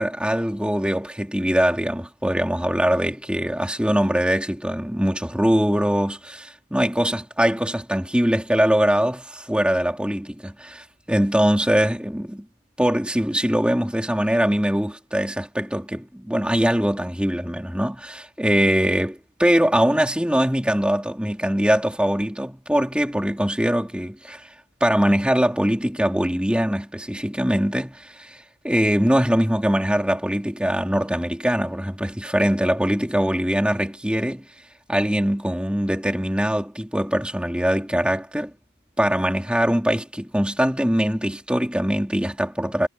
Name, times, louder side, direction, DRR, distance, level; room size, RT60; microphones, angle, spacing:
voice 1, 0.0-12.5 12.8-24.4 24.8-28.4 28.6-34.4 34.9-38.5 39.0-42.9, equal, 5° right, 3.4 m, -22 dB
head